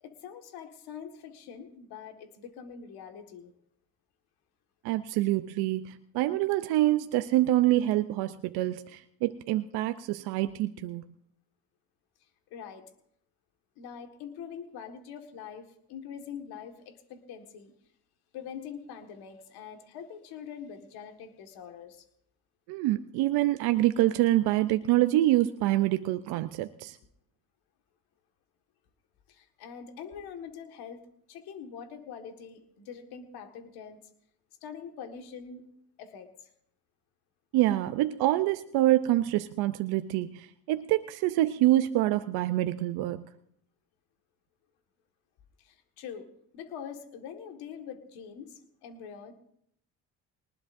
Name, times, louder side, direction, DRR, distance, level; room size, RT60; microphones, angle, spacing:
voice 1, 0.0-3.5 12.5-12.8 13.8-17.7 18.3-22.1 29.3-31.0 31.3-34.0 34.6-35.6 36.0-36.5 45.6-46.3 46.5-49.3, left 7 dB, 80° left, 6 dB, 1.8 m, -44 dB
voice 2, 4.8-11.0 22.7-27.0 37.5-43.3, right 15 dB, 80° right, 10 dB, 0.6 m, -26 dB
21.5 x 19.5 x 2.6 m, 0.69 s
supercardioid pair, 65°, 37 cm